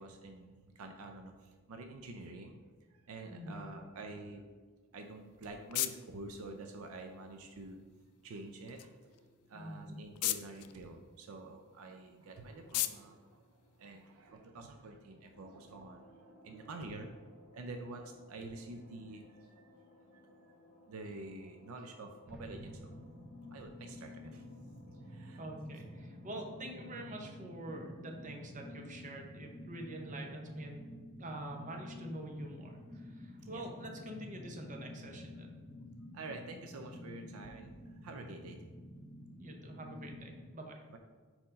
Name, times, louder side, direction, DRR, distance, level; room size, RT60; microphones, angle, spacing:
voice 1, 0.0-2.6 2.9-4.5 4.9-7.8 8.2-17.1 17.5-19.7 20.1-20.5 20.9-22.9 23.5-24.5 25.0-25.4 33.4-33.6 36.1-38.6 40.9-41.0, right 2 dB, 70° right, 5 dB, 0.5 m, -48 dB
voice 2, 3.3-3.7 9.5-10.0 25.4-30.8 31.2-35.5 39.4-40.8, right 1 dB, 35° right, 2 dB, 0.8 m, -45 dB
sound 1, 4.9-14.4, left 15 dB, 80° left, 0.3 m, -43 dB
sound 2, 15.3-27.6, left 1 dB, 30° left, 1.6 m, -62 dB
sound 3, 22.3-40.4, left 1 dB, 5° right, 0.5 m, -50 dB
4.5 x 4.2 x 5.1 m, 1.5 s
head